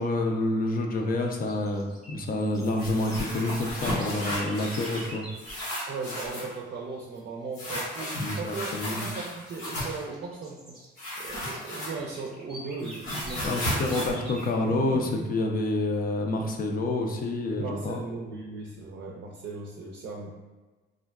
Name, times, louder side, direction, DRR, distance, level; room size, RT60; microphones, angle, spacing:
voice 1, 0.0-5.3 8.2-9.0 13.4-18.0, left 2 dB, 45° left, 2 dB, 0.5 m, -28 dB
sound 1, 1.2-6.0 8.2-8.6 9.0-14.6, right 1 dB, ahead, 0.7 m, -47 dB
sound 2, 2.6-5.1 5.4-6.5 7.5-10.0 11.0-12.3 12.5-15.2, left 1 dB, 90° left, 1.2 m, -34 dB
voice 2, 5.9-10.8 11.2-13.8 17.6-20.3, right 4 dB, 55° right, -2 dB, 0.5 m, -38 dB
3.6 x 2.2 x 2.3 m, 1.2 s
cardioid pair, 90°, 20 cm